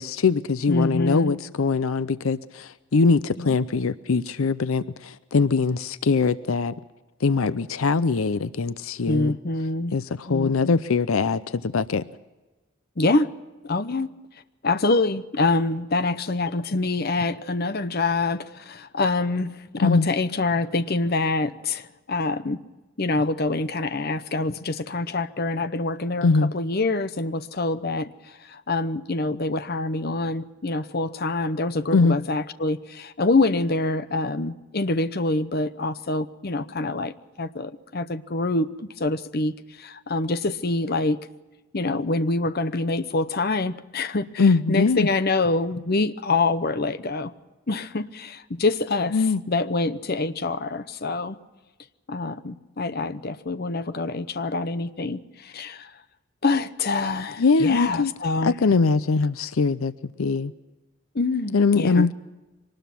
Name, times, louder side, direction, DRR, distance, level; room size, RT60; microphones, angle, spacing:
voice 1, 0.0-6.7 7.2-9.3 9.9-12.0 19.8-20.1 26.2-26.5 31.9-32.2 44.4-45.1 49.1-49.4 57.4-58.1 58.4-59.9 60.2-60.5 61.5-62.1, left 4 dB, 80° left, 0.6 m, -22 dB
voice 2, 0.7-1.4 3.4-3.6 9.0-9.9 10.3-10.8 13.0-13.3 13.6-14.1 14.6-22.6 23.0-41.2 41.7-47.3 47.7-49.2 49.5-51.4 52.1-55.9 56.4-58.5 61.1-62.1, left 3 dB, 45° left, 0.8 m, -26 dB
24.0 x 19.5 x 6.0 m
head